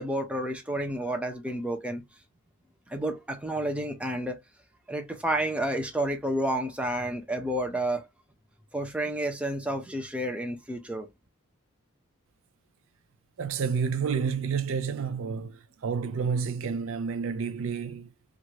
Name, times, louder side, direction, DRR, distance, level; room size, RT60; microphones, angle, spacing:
voice 1, 0.0-2.0 2.9-4.4 4.9-8.1 8.7-11.1, right 1 dB, 5° right, 0.5 m, -30 dB
voice 2, 13.4-18.1, right 6 dB, 60° right, 0.4 m, -30 dB
3.1 x 2.4 x 2.8 m
head